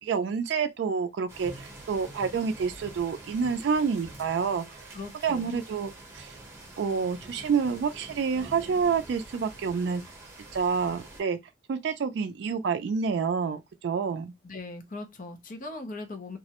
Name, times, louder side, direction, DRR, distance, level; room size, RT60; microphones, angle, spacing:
voice 1, 0.0-4.9 5.2-6.4 6.8-10.0 10.5-11.4 11.7-14.3, right 6 dB, 70° right, 0.3 m, -28 dB
sound 1, 1.3-11.2, right 1 dB, 15° right, 0.9 m, -46 dB
voice 2, 4.9-5.6 14.4-16.4, left 2 dB, 50° left, 0.6 m, -39 dB
2.3 x 2.0 x 2.8 m
head